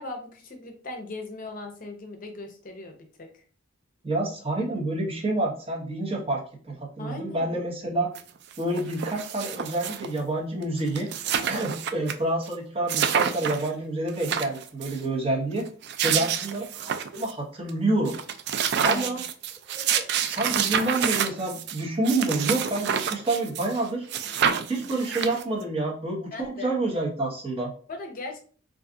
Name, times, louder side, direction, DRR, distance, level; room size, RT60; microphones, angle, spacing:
voice 1, 0.0-3.4 7.0-7.6 11.4-11.7 16.0-16.3 18.8-19.2 24.1-24.2 26.3-26.7 27.9-28.4, left 2 dB, 45° left, 3 dB, 0.6 m, -38 dB
voice 2, 4.0-8.1 8.6-11.1 11.5-15.7 16.0-18.2 18.8-19.2 19.7-24.0 24.7-27.7, right 2 dB, 30° right, -1 dB, 0.8 m, -28 dB
sound 1, 8.1-8.2 8.5-10.2 10.6-10.7 10.9-12.1 12.5-12.6 12.9-13.7 14.1-15.0 15.7-17.3 17.7-17.8 18.1-23.8 24.1-25.6, right 8 dB, 55° right, 0.3 m, -28 dB
2.5 x 2.3 x 3.7 m, 0.42 s
head